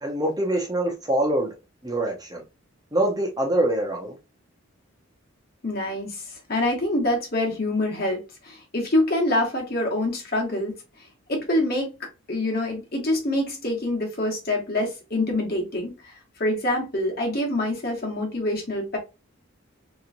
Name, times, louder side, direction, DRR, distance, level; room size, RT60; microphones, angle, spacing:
voice 1, 0.0-1.5 1.8-2.4 2.9-4.1, right 1 dB, 20° right, 0.7 m, -24 dB
voice 2, 5.6-10.7 11.3-11.9 12.3-16.1 16.4-19.0, left 1 dB, 45° left, 1.2 m, -25 dB
3.0 x 3.0 x 2.6 m
head